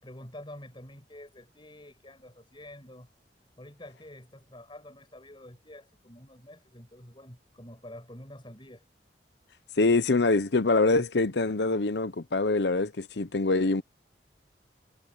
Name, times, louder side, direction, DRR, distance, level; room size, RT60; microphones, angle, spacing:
voice 1, 0.0-3.1 3.6-8.8, left 1 dB, 25° left, 6.3 m, -48 dB
voice 2, 9.8-13.8, left 3 dB, 70° left, 0.8 m, -24 dB
head